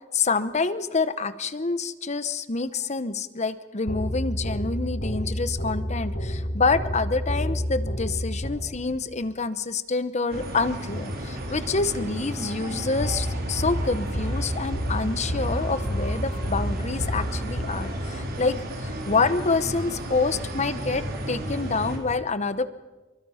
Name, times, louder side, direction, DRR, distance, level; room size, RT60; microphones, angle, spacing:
voice 1, 0.1-22.7, left 4 dB, 35° left, 13 dB, 0.8 m, -27 dB
sound 1, 3.9-9.0 13.0-18.2, equal, 65° left, 5.5 m, -30 dB
sound 2, 10.3-22.0, equal, 50° right, 3.9 m, -33 dB
26.5 x 23.5 x 5.7 m, 1.2 s
head